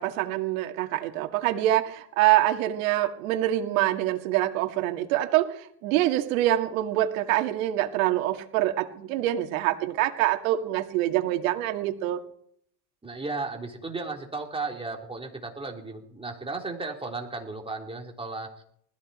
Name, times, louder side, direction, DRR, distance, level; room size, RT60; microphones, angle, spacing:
voice 1, 0.0-12.2, right 14 dB, 80° right, 6 dB, 2.1 m, -25 dB
voice 2, 13.0-18.6, right 3 dB, 15° right, 1 dB, 3.7 m, -35 dB
20.0 x 15.0 x 4.3 m, 0.66 s
supercardioid pair, 100°, 40 cm